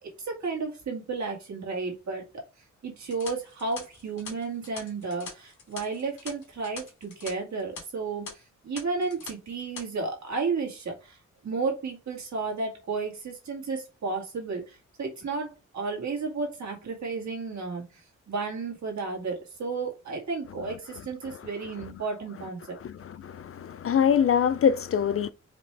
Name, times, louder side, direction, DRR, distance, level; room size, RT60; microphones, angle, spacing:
voice 1, 0.0-2.2 2.8-11.2 11.4-22.8, right 4 dB, 65° right, 2.3 m, -33 dB
sound 1, 3.0-7.3 7.6-7.8 8.3-8.4 8.8-9.3 9.6-9.8, left 4 dB, 75° left, 2.3 m, -43 dB
voice 2, 22.8-25.3, left 8 dB, 50° left, 0.4 m, -24 dB
5.1 x 3.0 x 3.3 m
cardioid pair, 75°, 31 cm